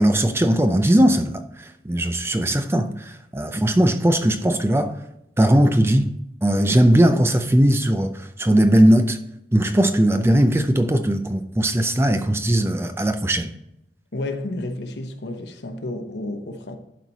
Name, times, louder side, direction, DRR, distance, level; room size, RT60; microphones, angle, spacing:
voice 1, 0.0-5.0 5.4-6.1 6.4-9.2 9.5-13.5, right 1 dB, 15° right, 0.5 m, -19 dB
voice 2, 14.1-16.8, left 2 dB, 75° left, 1.0 m, -31 dB
11.5 x 4.5 x 4.1 m
head